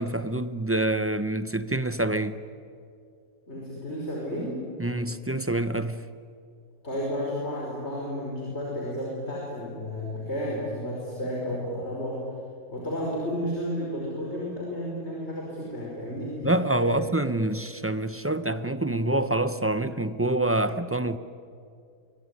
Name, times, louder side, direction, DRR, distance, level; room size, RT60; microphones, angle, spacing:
voice 1, 0.0-2.4 4.8-6.1 16.4-21.2, right 1 dB, 20° right, 0.3 m, -26 dB
voice 2, 3.5-4.6 6.8-12.2 12.7-16.5 16.8-17.0, equal, 40° left, 5.7 m, -32 dB
23.5 x 23.5 x 9.8 m
omnidirectional pair, 1.7 m